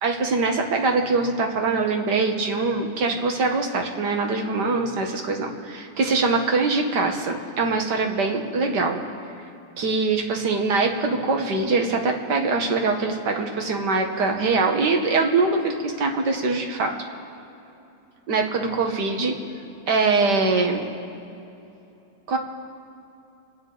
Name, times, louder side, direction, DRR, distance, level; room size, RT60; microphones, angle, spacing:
voice 1, 0.0-9.0 9.8-16.9 18.3-19.4 19.9-20.9 22.3-22.4, right 3 dB, 65° right, 3 dB, 1.9 m, -23 dB
29.5 x 9.8 x 4.0 m, 2.8 s
omnidirectional pair, 1.9 m